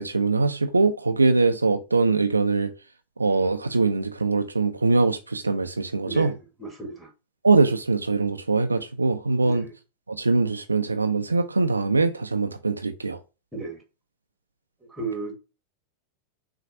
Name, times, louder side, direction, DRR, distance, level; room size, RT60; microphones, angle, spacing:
voice 1, 0.0-2.7 3.2-6.3 7.4-9.7 10.1-13.2, right 3 dB, 80° right, 0.4 m, -22 dB
voice 2, 6.6-7.1 9.4-9.7 13.5-13.8 14.8-15.3, right 3 dB, 5° right, 1.5 m, -34 dB
6.0 x 2.5 x 2.7 m
figure-of-eight pair, 90°, 0 cm